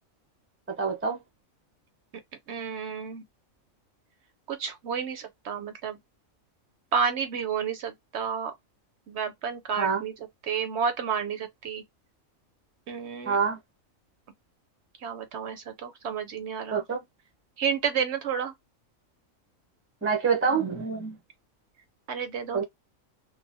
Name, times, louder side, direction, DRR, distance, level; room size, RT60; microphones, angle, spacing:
voice 1, 0.8-1.2 9.8-10.0 13.3-13.6 16.7-17.0 20.0-21.2 22.5-22.6, right 5 dB, 20° right, 0.3 m, -26 dB
voice 2, 2.5-3.2 4.5-6.0 6.9-8.5 9.1-10.1 10.4-11.8 12.9-13.4 15.0-16.8 17.6-18.5 22.1-22.6, right 7 dB, 65° right, 0.7 m, -31 dB
3.0 x 2.1 x 2.6 m
omnidirectional pair, 1.4 m